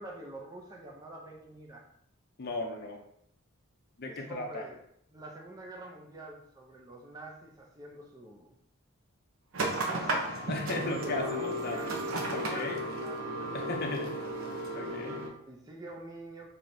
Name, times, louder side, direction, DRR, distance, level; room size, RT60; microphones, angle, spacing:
voice 1, 0.0-1.9 4.0-4.8 5.1-8.5 9.6-10.5 10.7-11.9 12.3-14.3 15.5-16.5, right 1 dB, 15° right, -2 dB, 0.5 m, -46 dB
voice 2, 2.4-3.0 4.0-4.7 10.5-12.0 12.3-12.8 13.5-14.1 14.7-15.3, left 2 dB, 45° left, 3 dB, 0.5 m, -36 dB
sound 1, 9.5-15.3, right 1 dB, 70° right, 0.7 m, -34 dB
4.9 x 2.8 x 2.6 m, 0.69 s
head